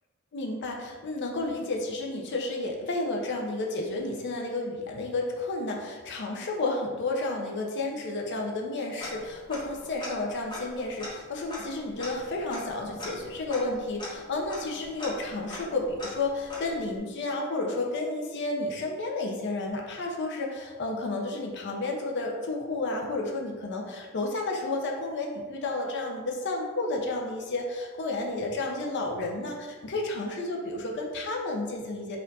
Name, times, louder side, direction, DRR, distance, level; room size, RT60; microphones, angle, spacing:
voice 1, 0.3-32.2, left 2 dB, 55° left, 0 dB, 0.6 m, -31 dB
Tick-tock, 9.0-9.7 10.0-10.1 10.5-17.0, left 1 dB, 20° left, 1.3 m, -41 dB
4.3 x 2.5 x 4.0 m, 1.4 s
head